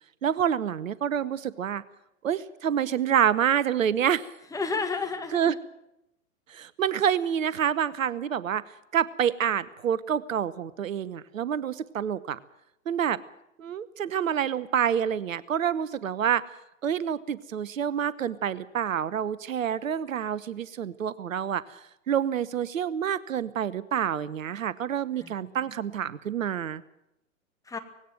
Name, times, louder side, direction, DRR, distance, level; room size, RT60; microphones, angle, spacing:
voice 1, 0.2-1.8 2.2-4.3 5.3-5.5 6.5-8.6 8.9-12.4 12.9-13.2 13.6-16.4 16.8-21.6 22.1-26.8, right 9 dB, 70° right, 19 dB, 1.0 m, -27 dB
voice 2, 4.5-5.6 25.2-25.9 27.7-27.8, left 4 dB, 10° left, 6 dB, 1.9 m, -33 dB
18.5 x 17.0 x 9.2 m, 0.84 s
figure-of-eight pair, 105°, 42 cm